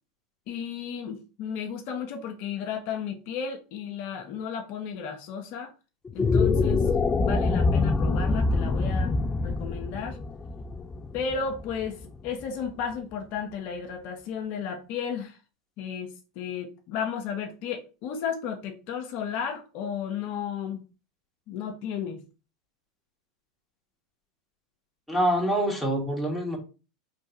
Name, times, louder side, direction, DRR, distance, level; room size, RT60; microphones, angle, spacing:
voice 1, 0.5-5.7 6.1-6.8 7.2-9.2 9.4-10.2 11.1-15.4 15.8-20.8 21.5-22.2, left 7 dB, 50° left, 3 dB, 0.8 m, -33 dB
sound 1, 6.0-12.4, left 3 dB, 15° left, 0.3 m, -25 dB
voice 2, 25.1-26.6, right 1 dB, ahead, -2 dB, 1.5 m, -25 dB
4.4 x 3.3 x 2.8 m, 0.32 s
hypercardioid pair, 120°, 3 cm